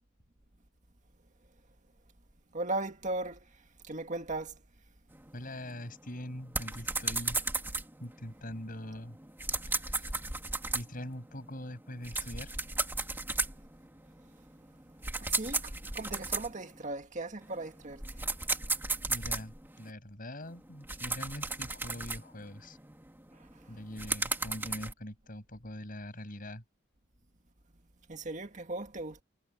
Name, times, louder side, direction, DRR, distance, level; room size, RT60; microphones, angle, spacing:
voice 1, 2.5-4.6 15.2-18.2 23.3-23.5 28.1-29.2, right 2 dB, 40° right, 1.9 m, -38 dB
sound 1, 5.1-16.9 17.4-19.9 20.4-24.9, right 3 dB, 10° right, 2.2 m, -36 dB
voice 2, 5.3-7.4 8.0-9.2 9.7-10.2 10.7-12.5 19.1-22.8 23.7-26.6, left 1 dB, 45° left, 7.4 m, -43 dB
head